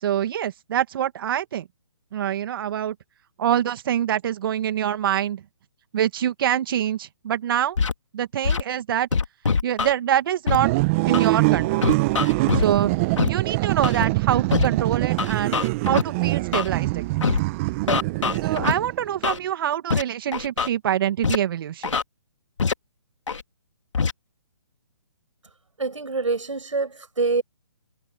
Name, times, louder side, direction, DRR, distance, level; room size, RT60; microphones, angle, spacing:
voice 1, 0.0-1.7 2.1-2.9 3.4-5.4 5.9-7.8 8.1-9.1 9.6-10.7 11.1-12.0 12.6-12.9 13.3-15.6 15.9-17.3 18.4-22.0, right 10 dB, 45° right, 2.3 m, -25 dB
Scratching (performance technique), 7.8-7.9 8.4-8.6 9.1-9.9 10.5-10.6 11.1-11.3 11.8-12.7 13.2-13.3 13.8-14.0 14.5-14.7 15.2-16.0 16.5-16.7 17.2-17.4 17.9-18.7 19.2-19.4 19.9-20.0 20.3-20.7 21.2-21.4 21.8-22.0 22.6-22.7 23.3-23.4 23.9-24.1, left 5 dB, 75° left, 2.5 m, -23 dB
sound 1, 10.5-19.1, right 23 dB, 25° right, 1.1 m, -24 dB
voice 2, 25.8-27.4, right 4 dB, 90° right, 5.9 m, -25 dB
hypercardioid pair, 145°, 16 cm